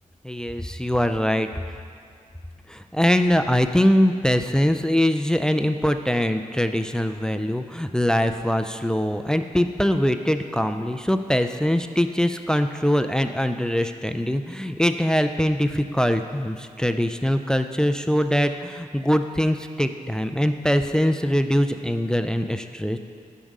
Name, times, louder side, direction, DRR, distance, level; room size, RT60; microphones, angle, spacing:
voice 1, 0.2-1.5 2.7-23.0, equal, 5° left, 8 dB, 0.3 m, -22 dB
7.3 x 4.7 x 5.3 m, 2.4 s
cardioid pair, 85°, 14 cm